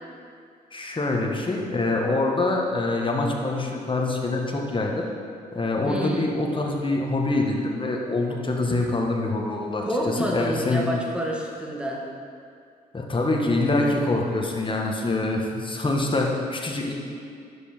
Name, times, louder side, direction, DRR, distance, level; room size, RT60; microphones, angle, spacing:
voice 1, 0.7-5.1 5.5-10.9 12.9-16.9, left 2 dB, 25° left, 0 dB, 1.5 m, -25 dB
voice 2, 5.8-6.4 9.8-12.1, equal, 5° right, -2 dB, 1.9 m, -28 dB
11.5 x 5.3 x 4.5 m, 2.3 s
hypercardioid pair, 45°, 21 cm